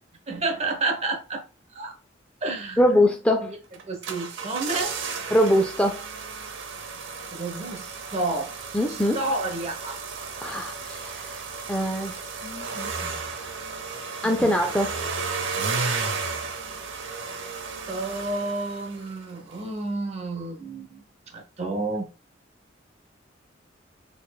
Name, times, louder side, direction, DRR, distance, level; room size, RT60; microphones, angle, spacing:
voice 1, 0.3-1.4 1.7-1.9 2.4-2.8 3.4-3.5 3.9-4.9 7.3-8.5 8.9-10.0 14.2-14.5 17.9-21.0 21.3-22.1, right 2 dB, 35° right, 0.8 m, -30 dB
voice 2, 2.8-3.5 5.3-6.0 8.7-9.2 10.4-11.4 11.7-13.1 13.4-13.6 14.2-14.9, equal, 5° left, 0.4 m, -23 dB
sound 1, 3.7-19.2 19.5-19.6, right 4 dB, 85° right, 0.7 m, -33 dB
4.2 x 3.1 x 2.2 m
head